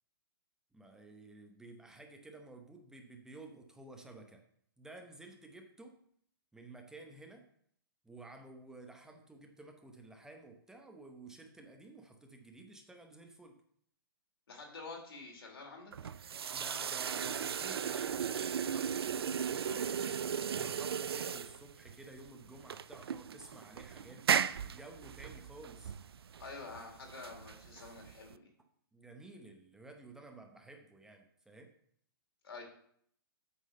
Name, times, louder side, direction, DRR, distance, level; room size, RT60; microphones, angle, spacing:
voice 1, 0.7-4.4 4.8-6.0 6.5-7.5 8.0-13.6 16.5-19.0 20.5-24.3 24.6-26.0 28.9-31.7, right 2 dB, 5° right, 3 dB, 0.8 m, -53 dB
voice 2, 14.5-15.9 19.5-19.9 26.4-28.5 32.4-32.6, left 3 dB, 80° left, 0 dB, 2.8 m, -48 dB
sound 1, 15.9-28.3, right 7 dB, 85° right, 0.4 m, -36 dB
8.3 x 3.8 x 6.5 m, 0.65 s
hypercardioid pair, 140°, 13 cm